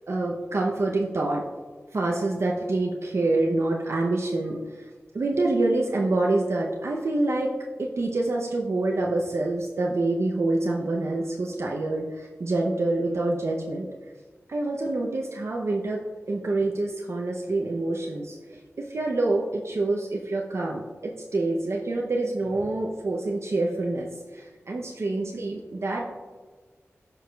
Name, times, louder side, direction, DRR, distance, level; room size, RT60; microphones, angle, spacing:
voice 1, 0.1-1.4 1.9-4.6 5.1-7.5 7.8-13.9 14.5-16.0 16.3-26.0, right 2 dB, 65° right, -2 dB, 0.6 m, -26 dB
13.0 x 4.7 x 2.3 m, 1.4 s
wide cardioid pair, 60°, 5 cm